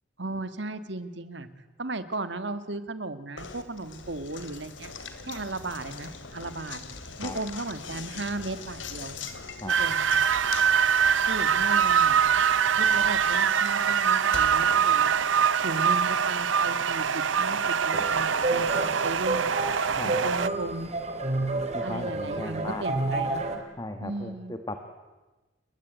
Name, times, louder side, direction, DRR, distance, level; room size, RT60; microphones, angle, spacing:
voice 1, 0.2-1.5 1.8-4.9 5.3-6.8 7.2-9.2 9.6-10.1 11.3-12.2 12.8-15.2 15.6-19.5 20.0-20.9 21.8-23.4 24.0-24.5, right 2 dB, 65° right, 11 dB, 1.9 m, -35 dB
Knock, 3.4-15.5, left 4 dB, 75° left, 2.9 m, -42 dB
sound 1, 9.7-20.5, right 7 dB, 85° right, 0.8 m, -24 dB
sound 2, 17.9-23.6, right 2 dB, 35° right, 3.7 m, -30 dB
voice 2, 20.0-20.3 21.7-22.8 23.8-24.8, left 1 dB, 20° left, 7 dB, 1.7 m, -37 dB
29.5 x 22.0 x 9.2 m, 1.2 s
head